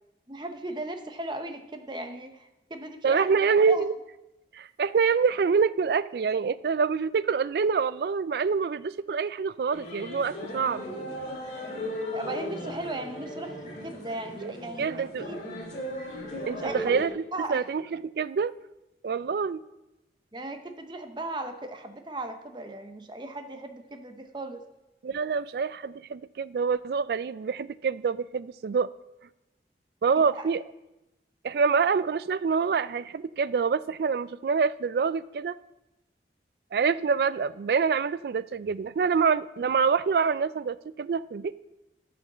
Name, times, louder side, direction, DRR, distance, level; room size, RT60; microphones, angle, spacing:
voice 1, 0.3-3.3 3.7-3.8 12.1-15.4 16.5-16.9 17.3-17.6 20.3-24.6 30.3-30.5, right 2 dB, 25° right, 7 dB, 0.7 m, -37 dB
voice 2, 3.0-3.9 4.5-10.8 14.4-14.5 14.8-15.3 16.5-17.1 17.5-18.5 19.0-19.6 25.0-28.9 30.0-30.6 31.4-35.6 36.7-41.6, right 5 dB, 60° right, 17 dB, 0.3 m, -26 dB
sound 1, 9.7-17.1, left 1 dB, 45° left, 2.1 m, -37 dB
11.0 x 5.2 x 6.6 m, 0.96 s
head